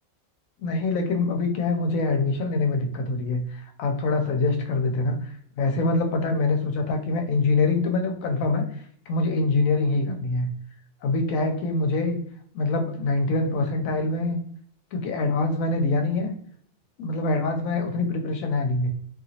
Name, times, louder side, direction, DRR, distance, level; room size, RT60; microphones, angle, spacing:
voice 1, 0.6-5.2 5.6-8.6 9.1-10.5 11.0-12.2 12.5-14.4 14.9-16.3 17.0-18.9, left 3 dB, 85° left, 5 dB, 1.0 m, -24 dB
2.9 x 2.6 x 2.7 m, 0.63 s
omnidirectional pair, 1.4 m